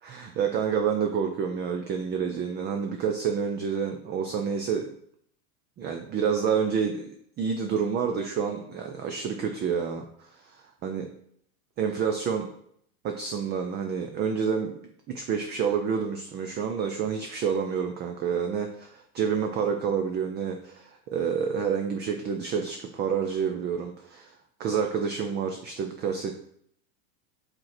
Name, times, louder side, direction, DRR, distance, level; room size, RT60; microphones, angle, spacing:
voice 1, 0.0-4.9 5.8-11.1 11.8-12.5 13.0-14.7 15.1-26.3, right 6 dB, 25° right, 4 dB, 0.4 m, -28 dB
5.2 x 4.4 x 5.8 m, 0.68 s
supercardioid pair, 125°, 49 cm